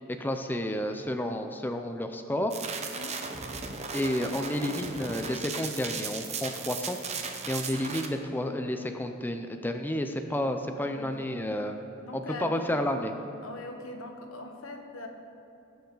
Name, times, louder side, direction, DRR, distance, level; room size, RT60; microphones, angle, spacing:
voice 1, 0.1-2.5 3.9-11.8 12.1-13.1, left 1 dB, 10° left, 6 dB, 0.5 m, -31 dB
sound 1, 2.5-8.1, right 5 dB, 35° right, 0.8 m, -36 dB
voice 2, 10.7-11.7 12.0-12.9 13.4-15.1, left 1 dB, 85° left, 3 dB, 1.2 m, -42 dB
17.5 x 7.0 x 3.9 m, 2.9 s
head